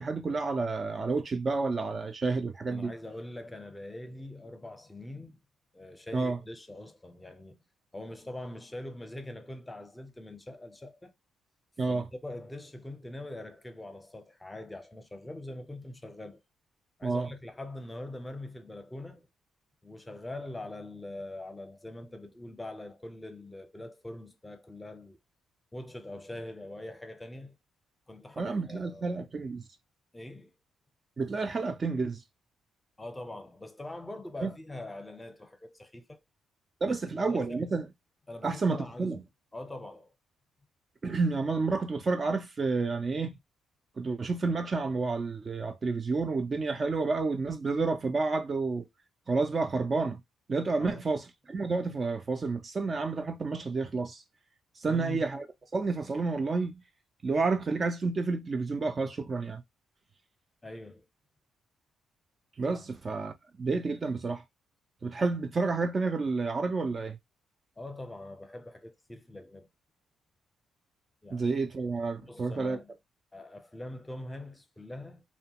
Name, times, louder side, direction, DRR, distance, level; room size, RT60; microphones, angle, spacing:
voice 1, 0.0-2.9 6.1-6.4 11.8-12.1 17.0-17.3 28.4-29.6 31.2-32.2 34.4-34.5 36.8-37.9 38.4-39.2 41.0-43.3 44.0-48.9 49.3-50.2 50.5-54.2 54.8-55.4 55.7-56.8 57.2-59.6 62.6-63.3 63.6-64.4 65.0-67.2 71.3-72.8, right 3 dB, 35° right, 0.4 m, -30 dB
voice 2, 2.7-5.4 5.7-7.6 7.9-11.1 11.9-16.4 17.0-19.3 19.8-25.2 25.7-27.6 28.1-29.2 30.1-30.5 33.0-36.2 36.8-37.7 38.3-39.2 39.5-40.1 50.8-51.0 54.8-55.3 60.6-61.1 62.7-62.8 67.8-69.7 71.2-71.6 72.2-72.9 73.3-75.2, left 1 dB, 15° left, 0.6 m, -43 dB
2.7 x 2.2 x 2.8 m
cardioid pair, 90°, 0 cm